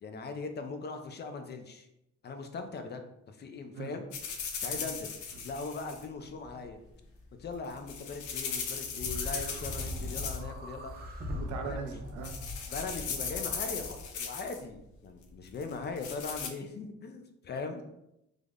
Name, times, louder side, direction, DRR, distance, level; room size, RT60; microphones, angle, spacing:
voice 1, 0.0-1.9 2.2-4.1 4.6-5.1 5.4-6.8 7.4-10.9 11.6-12.0 12.7-17.8, left 4 dB, 35° left, 6 dB, 0.4 m, -40 dB
sound 1, 4.1-6.0 7.5-10.6 10.8-11.3 11.8-12.0 12.2-14.6 15.6-16.5, left 6 dB, 80° left, 0.6 m, -38 dB
sound 2, 8.9-14.0, left 1 dB, 30° right, 0.6 m, -40 dB
voice 2, 11.3-12.3, right 6 dB, 90° right, 4 dB, 0.6 m, -40 dB
3.4 x 2.0 x 3.6 m, 0.83 s
cardioid pair, 120°, 30 cm